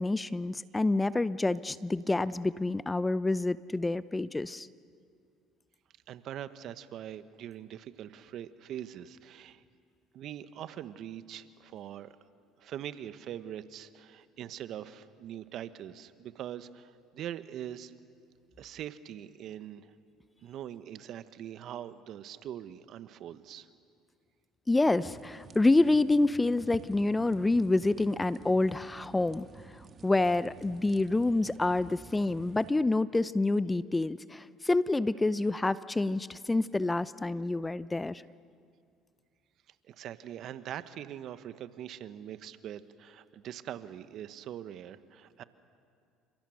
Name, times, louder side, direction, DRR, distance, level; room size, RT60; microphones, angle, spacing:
voice 1, 0.0-4.7 24.7-29.5 30.0-38.2, left 2 dB, 15° left, 16 dB, 0.6 m, -27 dB
voice 2, 6.1-9.6 10.1-12.2 12.6-17.9 18.6-19.9 20.4-23.7 39.7-45.4, right 10 dB, 60° right, 12 dB, 1.2 m, -42 dB
sound 1, 25.0-32.7, right 5 dB, 35° right, 1.6 m, -51 dB
29.5 x 26.5 x 6.5 m, 2.4 s
hypercardioid pair, 75°, 0 cm